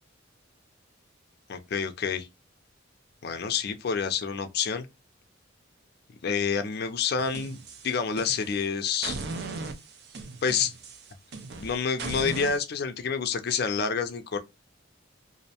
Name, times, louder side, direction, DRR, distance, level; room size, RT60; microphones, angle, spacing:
voice 1, 1.5-2.3 3.2-4.9 6.2-7.6 7.8-9.2 10.4-10.7 11.6-14.4, left 6 dB, 55° left, 0.4 m, -28 dB
sound 1, 7.2-8.6 9.0-12.6, right 3 dB, 55° right, 0.5 m, -38 dB
2.5 x 2.1 x 2.7 m
head